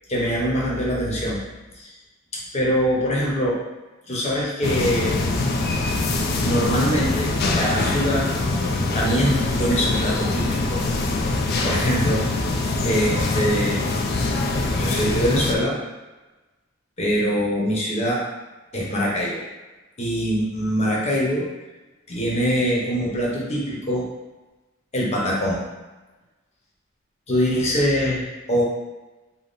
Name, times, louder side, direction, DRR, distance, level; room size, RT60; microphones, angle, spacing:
voice 1, 0.1-1.4 1.8-1.9 2.3-3.6 4.1-5.2 6.4-8.4 8.9-10.8 11.6-12.3 12.8-13.8 14.8-15.8 17.0-18.3 18.7-19.4 20.0-21.5 22.1-24.1 24.9-25.6 27.3-28.6, equal, 35° left, -4 dB, 0.8 m, -23 dB
sound 1, 4.6-15.5, left 2 dB, 50° left, 0.4 m, -23 dB
3.6 x 2.0 x 3.9 m, 1.1 s
head